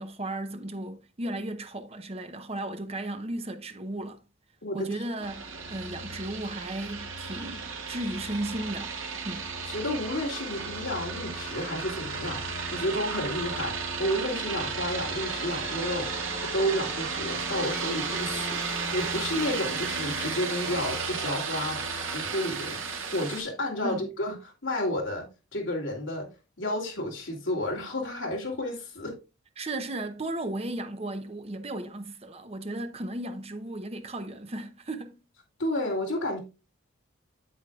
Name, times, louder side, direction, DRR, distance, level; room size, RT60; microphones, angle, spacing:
voice 1, 0.0-4.2 4.7-8.9 9.2-9.5 23.8-24.0 29.6-35.2, right 1 dB, 30° right, 0.8 m, -35 dB
sound 1, 5.2-23.4, right 4 dB, 70° right, 1.7 m, -33 dB
voice 2, 9.6-13.7 14.0-21.8 22.1-25.2 25.5-26.3 26.6-29.1 35.6-36.4, left 1 dB, 65° left, 2.8 m, -31 dB
8.5 x 8.0 x 2.4 m
head